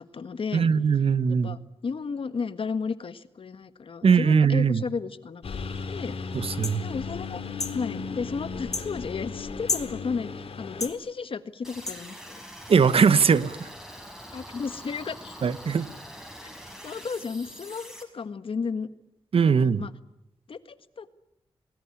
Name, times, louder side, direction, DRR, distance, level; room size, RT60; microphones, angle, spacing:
voice 1, 0.0-0.7 1.3-5.4 5.9-6.2 6.8-7.4 7.7-12.4 14.3-15.4 16.4-16.5 16.8-18.9 19.4-19.9 20.5-21.1, left 5 dB, 65° left, 1.6 m, -33 dB
voice 2, 0.5-1.6 4.0-4.8 6.3-6.8 12.7-13.7 15.4-15.9 19.3-19.8, right 6 dB, 75° right, 1.2 m, -21 dB
Engine, 5.4-10.9, left 5 dB, 80° left, 4.3 m, -35 dB
sound 1, 6.6-6.8 7.6-7.8 8.7-8.9 9.7-9.9 10.8-11.0 11.9-12.0 13.0-13.1, left 3 dB, 35° left, 2.4 m, -30 dB
sound 2, 11.6-18.0, equal, 5° right, 6.1 m, -44 dB
28.5 x 19.5 x 9.8 m
wide cardioid pair, 95°, 10 cm